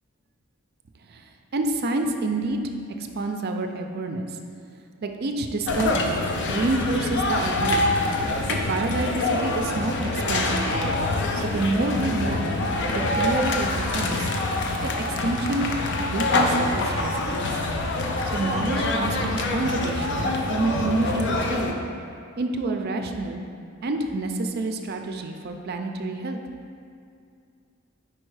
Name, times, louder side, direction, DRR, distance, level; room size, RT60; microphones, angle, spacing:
voice 1, 1.5-2.6 3.1-4.3 5.0-6.2 6.5-7.9 8.5-10.8 11.4-12.5 12.9-14.3 15.2-15.7 16.0-17.5 18.3-21.8 22.4-23.4 23.8-26.4, right 2 dB, 45° right, 4 dB, 0.4 m, -28 dB
sound 1, 5.7-21.7, left 2 dB, 55° left, 0.5 m, -25 dB
4.6 x 4.4 x 4.7 m, 2.3 s
head